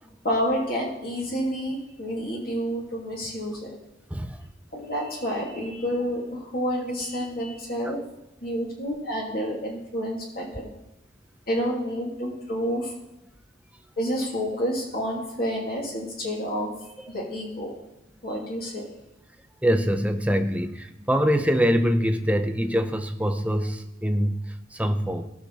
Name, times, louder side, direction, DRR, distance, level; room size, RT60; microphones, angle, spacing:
voice 1, 0.2-3.8 4.7-8.0 8.4-10.7 11.5-12.9 14.0-16.7 17.1-17.8 18.2-18.9, equal, 50° left, -3 dB, 2.8 m, -29 dB
voice 2, 4.1-4.4 7.8-7.9 19.6-25.3, equal, 5° right, 7 dB, 0.7 m, -24 dB
18.0 x 6.6 x 4.2 m, 0.95 s
head